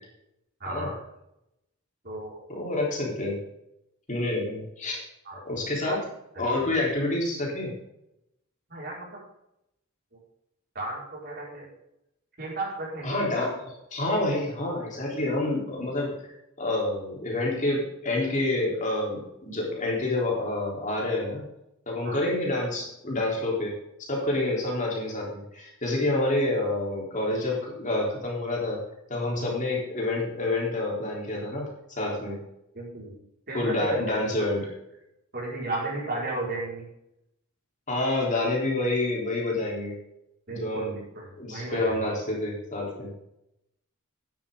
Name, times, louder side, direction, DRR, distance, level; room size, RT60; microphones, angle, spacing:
voice 1, 0.6-1.0 2.0-2.4 5.2-5.4 5.8-6.0 6.3-6.8 8.7-9.1 10.7-11.6 12.4-13.2 22.0-22.2 29.4-29.5 32.7-33.1 33.5-34.0 34.6-34.7 35.3-36.9 40.5-42.0, right 2 dB, 50° right, -4 dB, 5.1 m, -34 dB
voice 2, 2.5-3.4 4.1-5.0 5.5-6.0 6.4-7.7 13.0-16.3 16.6-21.5 21.9-23.7 24.1-28.8 29.1-32.4 33.5-34.7 37.9-40.0 40.5-41.0 41.4-43.1, left 2 dB, 35° left, -2 dB, 3.7 m, -28 dB
12.5 x 10.5 x 3.8 m, 0.83 s
head